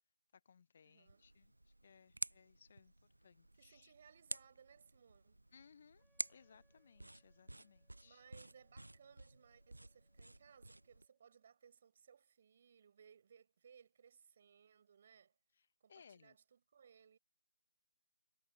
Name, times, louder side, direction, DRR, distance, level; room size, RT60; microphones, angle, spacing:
voice 1, 0.3-2.9 3.2-3.9 5.5-8.2 15.5-16.4, left 6 dB, 40° left, 0.9 m, -65 dB
voice 2, 0.8-1.2 3.6-5.4 8.0-15.4 15.8-17.2, right 7 dB, 40° right, 5.8 m, -65 dB
sound 1, 1.1-11.1, right 1 dB, 80° right, 0.5 m, -51 dB
Wind instrument woodwind instrument, 6.0-11.6, right 1 dB, ahead, 7.7 m, -84 dB
figure-of-eight pair, 155°, 0 cm